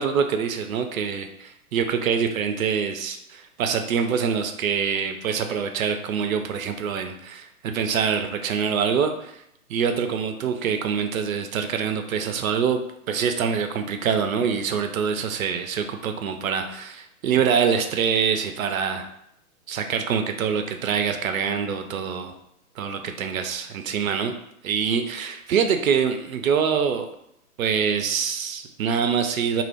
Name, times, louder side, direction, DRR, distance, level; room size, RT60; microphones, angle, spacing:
voice 1, 0.0-9.4 9.7-12.8 13.1-19.1 19.7-22.3 22.8-24.3 24.6-27.1 27.6-29.6, right 7 dB, 65° right, 6 dB, 0.5 m, -25 dB
2.3 x 2.0 x 3.2 m, 0.75 s
hypercardioid pair, 125°, 44 cm